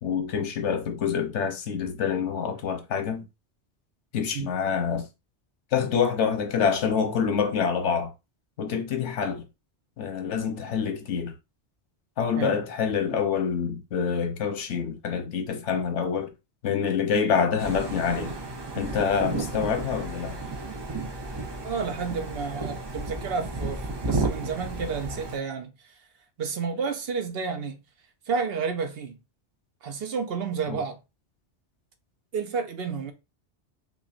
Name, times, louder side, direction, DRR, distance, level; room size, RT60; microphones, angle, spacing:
voice 1, 0.0-3.3 4.1-5.1 5.7-8.1 8.6-9.4 10.0-11.4 12.2-16.3 16.6-18.4 18.8-20.4 30.7-30.8, left 6 dB, 85° left, 1.1 m, -26 dB
voice 2, 12.3-12.6 19.3-19.5 21.6-26.0 26.4-27.8 28.3-29.2 29.8-31.0 32.3-33.1, right 5 dB, 65° right, 0.9 m, -31 dB
sound 1, 17.6-25.4, right 2 dB, 30° right, 0.6 m, -33 dB
5.5 x 2.4 x 2.4 m
omnidirectional pair, 1.2 m